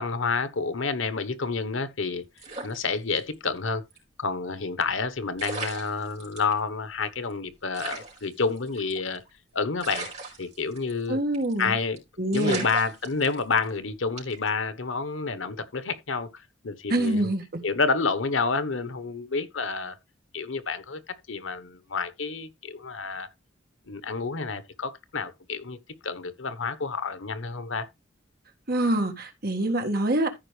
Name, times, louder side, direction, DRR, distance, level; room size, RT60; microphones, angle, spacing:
voice 1, 0.0-2.2 2.6-3.8 4.2-9.2 9.5-10.1 10.4-11.2 11.6-12.0 12.3-17.3 17.6-20.0 20.3-23.3 23.9-25.8 26.0-27.9, left 4 dB, 90° left, 1.2 m, -29 dB
sound 1, 2.4-3.6 3.9-4.0 5.0-5.1 5.4-6.5 7.0-7.1 7.3-7.4 7.7-9.3 9.8-11.1 11.3-11.6 12.0-12.1 12.3-13.7 14.2-14.5, right 3 dB, 35° right, 4.9 m, -37 dB
voice 2, 11.1-11.7 12.2-12.6 16.9-17.6 28.7-30.3, right 1 dB, 50° right, 1.7 m, -25 dB
14.0 x 5.2 x 3.3 m
head